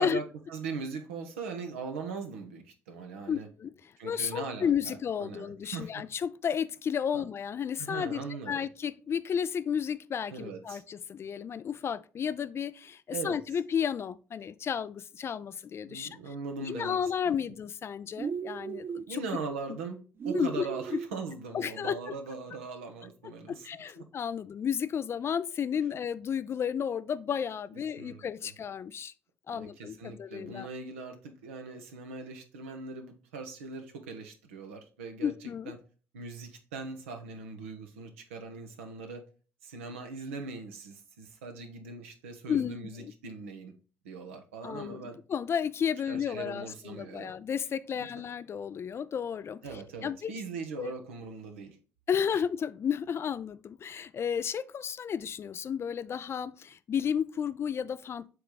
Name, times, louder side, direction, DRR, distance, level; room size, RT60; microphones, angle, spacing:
voice 1, 0.0-3.5 4.0-6.0 7.1-7.2 7.8-8.7 10.3-10.8 13.1-13.4 15.9-17.0 17.2-17.5 19.1-23.7 24.0-24.1 27.9-28.5 29.5-35.3 35.7-35.8 36.1-39.2 39.6-43.7 44.0-45.2 46.1-47.3 48.0-48.1 49.6-51.8 52.3-52.4, right 4 dB, 75° right, 1.0 m, -40 dB
voice 2, 3.3-16.1 16.6-19.2 20.3-20.7 20.9-21.0 21.5-22.1 23.5-29.1 29.5-30.7 35.2-35.7 42.5-43.1 44.6-49.6 50.0-50.3 50.8-50.9 52.1-58.3, left 8 dB, 40° left, 0.4 m, -32 dB
sound 1, 18.2-19.1 20.2-21.1, right 7 dB, 35° right, 0.4 m, -35 dB
7.5 x 3.3 x 3.8 m
figure-of-eight pair, 50°, 7 cm